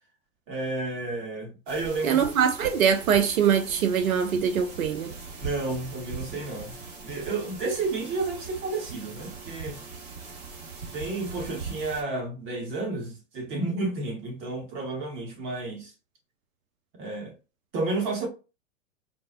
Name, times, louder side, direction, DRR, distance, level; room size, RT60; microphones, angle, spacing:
voice 1, 0.5-2.2 5.4-6.8 7.0-9.8 10.9-15.9 17.0-17.3 17.7-18.3, right 3 dB, 30° right, 1.0 m, -31 dB
sound 1, 1.7-12.0, right 4 dB, 50° right, 1.2 m, -41 dB
voice 2, 2.0-5.1, right 7 dB, 90° right, 0.5 m, -23 dB
3.9 x 2.0 x 2.3 m
hypercardioid pair, 120°, 40 cm